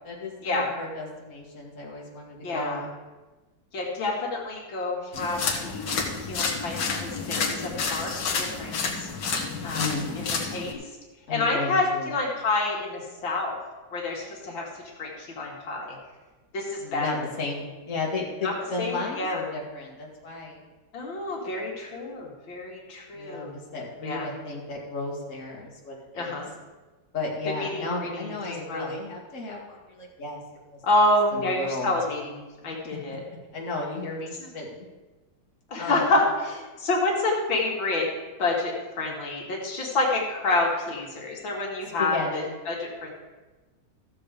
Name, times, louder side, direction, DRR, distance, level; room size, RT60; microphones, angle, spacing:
voice 1, 0.0-2.9 9.7-10.3 11.3-12.1 16.8-20.6 23.1-26.4 27.1-30.4 30.7-30.8 31.3-31.9 33.1-33.2 33.5-34.9 35.8-36.1 42.0-42.5, left 3 dB, 40° left, -2 dB, 2.3 m, -34 dB
voice 2, 2.4-2.8 3.7-5.9 6.2-9.1 9.6-9.9 10.2-10.8 11.3-13.6 13.9-14.7 15.0-15.9 16.5-17.2 18.4-19.4 20.9-23.6 24.0-24.3 26.1-26.5 27.6-28.3 28.7-28.9 30.8-33.2 34.4-34.5 35.7-38.1 38.4-43.1, left 2 dB, 90° left, -2 dB, 2.8 m, -28 dB
sound 1, 5.1-10.7, left 4 dB, 70° left, 2.1 m, -30 dB
14.5 x 7.2 x 5.1 m, 1.2 s
omnidirectional pair, 2.1 m